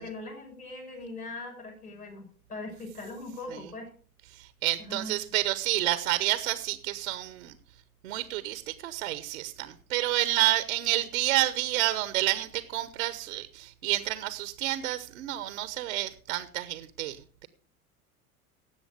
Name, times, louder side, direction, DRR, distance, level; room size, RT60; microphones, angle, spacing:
voice 1, 0.0-3.9 4.8-5.1, left 2 dB, 85° left, -1 dB, 6.3 m, -40 dB
voice 2, 4.3-7.5 8.0-17.5, right 16 dB, 65° right, 12 dB, 1.1 m, -29 dB
17.5 x 7.7 x 5.0 m, 0.43 s
figure-of-eight pair, 85°, 45 cm